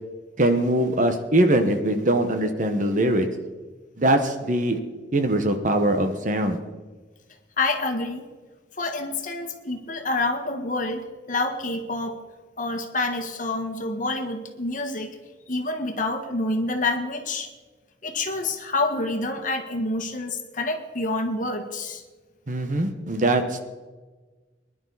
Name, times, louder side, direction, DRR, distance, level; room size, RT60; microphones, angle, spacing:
voice 1, 0.4-3.3 4.0-4.8 5.1-6.6 22.5-23.6, right 1 dB, 45° right, 7 dB, 1.3 m, -22 dB
voice 2, 7.6-8.2 8.8-12.2 12.6-15.1 15.5-17.5 18.0-22.0, left 2 dB, 45° left, 5 dB, 1.6 m, -27 dB
23.0 x 11.0 x 4.1 m, 1.3 s
head